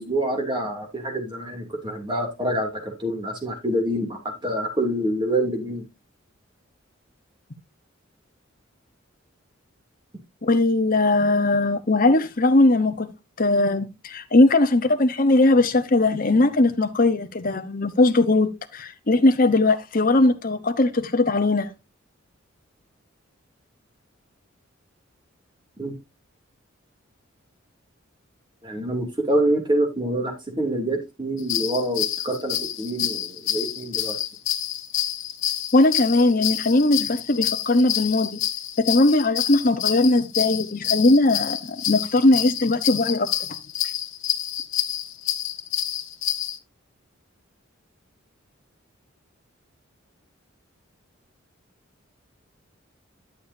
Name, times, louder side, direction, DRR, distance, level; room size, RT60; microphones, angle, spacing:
voice 1, 0.0-5.8 25.8-25.9 28.6-34.2, right 1 dB, 25° right, 2.6 m, -26 dB
voice 2, 10.4-13.1 13.4-21.7 35.7-38.4 38.8-43.3, left 2 dB, 45° left, 1.0 m, -19 dB
sound 1, 31.4-46.6, left 11 dB, 75° left, 1.0 m, -28 dB
11.0 x 7.0 x 2.7 m
head